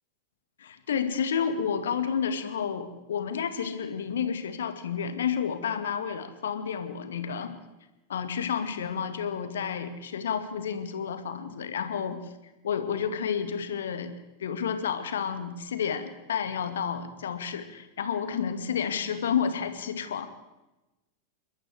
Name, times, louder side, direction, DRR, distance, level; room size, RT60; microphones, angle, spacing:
voice 1, 0.6-7.6 8.1-12.3 12.6-14.1 14.4-20.3, left 7 dB, 65° left, 9 dB, 2.2 m, -30 dB
29.0 x 13.0 x 7.9 m, 1.0 s
figure-of-eight pair, 90°, 0 cm